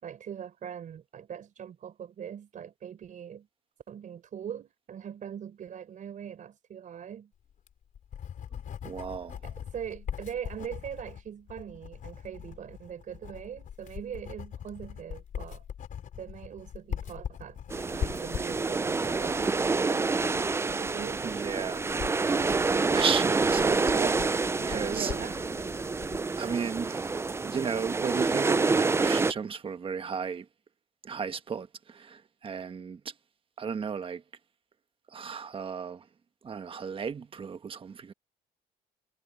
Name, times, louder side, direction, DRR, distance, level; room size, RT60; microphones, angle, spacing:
voice 1, 0.0-3.5 3.9-7.3 9.4-15.6 16.2-17.6 18.0-20.2 20.6-21.2 24.6-25.4, right 8 dB, 50° right, 4.8 m, -41 dB
Writing, 7.5-26.3, left 9 dB, 50° left, 4.5 m, -41 dB
voice 2, 8.8-9.4 21.2-25.1 26.4-30.5 31.0-33.1 33.6-34.2 35.1-36.1 36.4-38.1, right 6 dB, 30° right, 1.3 m, -35 dB
sound 1, 17.7-29.3, right 4 dB, 15° right, 0.5 m, -27 dB
cardioid pair, 110°, 17 cm